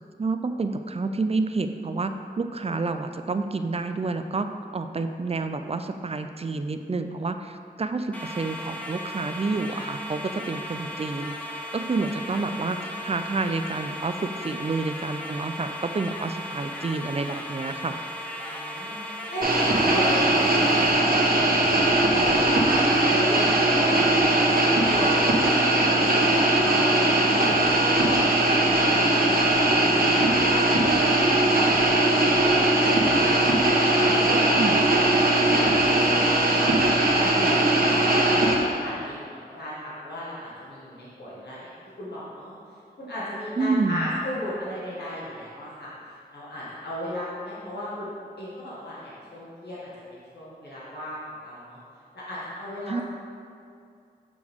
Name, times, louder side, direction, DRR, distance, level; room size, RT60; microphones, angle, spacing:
voice 1, 0.2-11.4 11.7-18.0 34.6-34.8 43.6-44.1 52.9-53.0, right 3 dB, 40° right, 8 dB, 0.4 m, -29 dB
sound 1, 8.1-20.9, left 1 dB, 10° left, 1.0 m, -36 dB
voice 2, 18.4-20.2 20.5-29.1 29.5-36.1 36.6-42.5 43.0-45.9 46.3-51.8 52.1-53.0, equal, 90° left, -8 dB, 1.6 m, -36 dB
sound 2, 19.4-38.5, right 1 dB, 65° right, 1.2 m, -20 dB
6.7 x 6.3 x 3.6 m, 2.4 s
wide cardioid pair, 65°, 17 cm